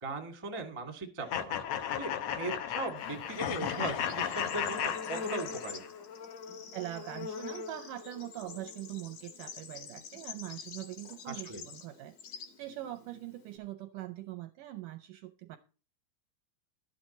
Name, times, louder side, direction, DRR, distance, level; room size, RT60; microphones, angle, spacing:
voice 1, 0.0-1.6 2.0-5.8 11.2-11.6, right 3 dB, 25° right, 4 dB, 0.6 m, -39 dB
sound 1, 1.3-5.9, left 9 dB, 75° left, 1.6 m, -34 dB
Bird / Insect, 3.0-13.6, left 6 dB, 50° left, 2.6 m, -45 dB
voice 2, 6.7-15.6, right 14 dB, 80° right, 8 dB, 1.9 m, -42 dB
12.5 x 9.2 x 4.3 m, 0.36 s
omnidirectional pair, 4.4 m